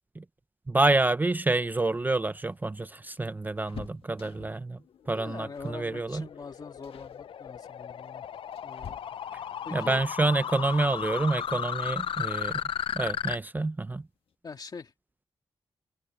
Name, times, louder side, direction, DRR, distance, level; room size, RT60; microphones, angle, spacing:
voice 1, 0.7-4.8 5.1-6.2 9.7-12.6 12.9-14.0, right 2 dB, 20° right, 0.4 m, -28 dB
sound 1, 2.0-4.7 5.5-5.9 6.2-6.4 6.8-7.2 8.0-9.5 11.3-11.4 11.7-11.8 13.0-13.4 13.8-13.9 14.2-14.4, left 7 dB, 85° left, 1.5 m, -48 dB
voice 2, 5.1-8.3 8.6-9.2 9.7-10.0 14.4-14.9, left 5 dB, 45° left, 2.0 m, -43 dB
sound 2, 5.3-13.4, left 8 dB, 70° left, 0.4 m, -35 dB
wide cardioid pair, 130°, 9 cm